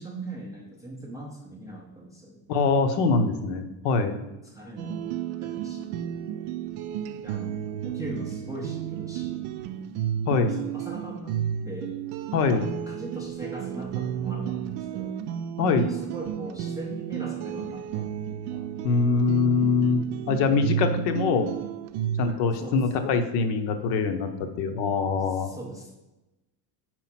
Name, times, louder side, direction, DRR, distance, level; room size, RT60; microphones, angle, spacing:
voice 1, 0.0-2.4 4.4-5.1 5.4-6.5 7.2-9.4 10.3-11.4 11.6-12.0 12.5-15.2 15.6-18.9 20.2-20.8 22.3-23.1 25.3-26.0, right 1 dB, 10° right, -3 dB, 0.4 m, -40 dB
voice 2, 2.5-4.2 10.3-10.5 12.3-12.6 15.6-15.9 18.8-21.5 22.2-25.5, left 4 dB, 60° left, 8 dB, 0.8 m, -23 dB
sound 1, 4.8-22.3, right 10 dB, 60° right, 0.5 m, -32 dB
4.8 x 4.5 x 5.7 m, 1.0 s
cardioid pair, 170°, 44 cm